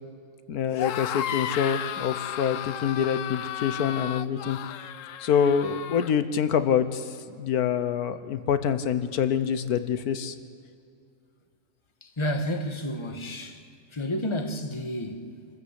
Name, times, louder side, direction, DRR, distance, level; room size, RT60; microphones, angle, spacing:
voice 1, 0.5-4.6 5.2-10.3, left 8 dB, 85° left, 1.4 m, -26 dB
sound 1, 0.7-6.1, left 10 dB, 65° left, 1.0 m, -34 dB
voice 2, 12.0-13.6 13.9-15.3, equal, 20° left, 1.4 m, -31 dB
26.5 x 14.5 x 8.2 m
omnidirectional pair, 1.6 m